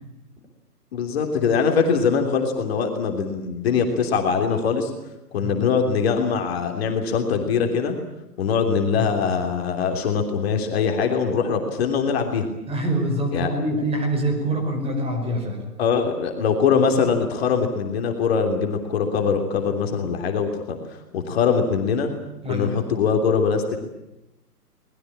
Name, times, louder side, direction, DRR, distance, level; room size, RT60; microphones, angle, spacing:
voice 1, 0.9-4.9 5.3-8.0 8.4-12.5 13.3-13.5 15.8-22.1 22.5-23.8, left 6 dB, 40° left, 4 dB, 3.3 m, -22 dB
voice 2, 12.7-15.6 22.4-22.8, right 1 dB, 10° right, 3 dB, 5.2 m, -25 dB
23.5 x 21.0 x 8.8 m, 0.95 s
figure-of-eight pair, 125°, 47 cm